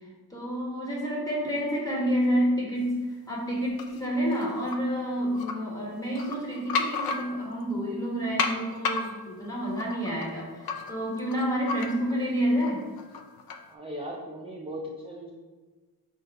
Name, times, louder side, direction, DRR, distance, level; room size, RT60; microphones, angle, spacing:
voice 1, 0.3-3.0 3.3-12.8, equal, 10° left, -5 dB, 1.5 m, -29 dB
sound 1, 3.8-4.8 5.3-5.5 6.0-7.6 8.4-12.3 12.6-13.7, left 4 dB, 70° left, 0.5 m, -33 dB
voice 2, 13.7-15.3, equal, 15° right, -2 dB, 0.5 m, -38 dB
4.3 x 2.6 x 4.6 m, 1.3 s
cardioid pair, 95°, 37 cm